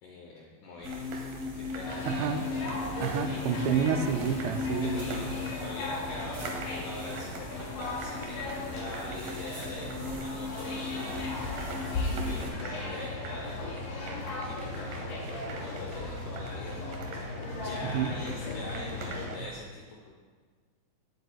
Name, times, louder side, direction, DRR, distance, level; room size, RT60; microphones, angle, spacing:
voice 1, 0.0-2.3 3.3-3.4 4.8-11.3 12.3-13.6 14.1-15.0 15.5-16.8 17.5-20.2, left 2 dB, 75° left, -1 dB, 1.9 m, -44 dB
sound 1, 0.8-12.5, left 4 dB, 45° right, 1.3 m, -38 dB
sound 2, 0.8-19.6, right 3 dB, 70° right, 2.3 m, -46 dB
sound 3, 1.8-19.3, left 2 dB, 60° left, 3.8 m, -37 dB
voice 2, 2.1-2.4 3.0-5.1 17.8-18.1, right 7 dB, 85° right, 6 dB, 2.8 m, -29 dB
18.5 x 8.2 x 2.3 m, 1.6 s
omnidirectional pair, 4.9 m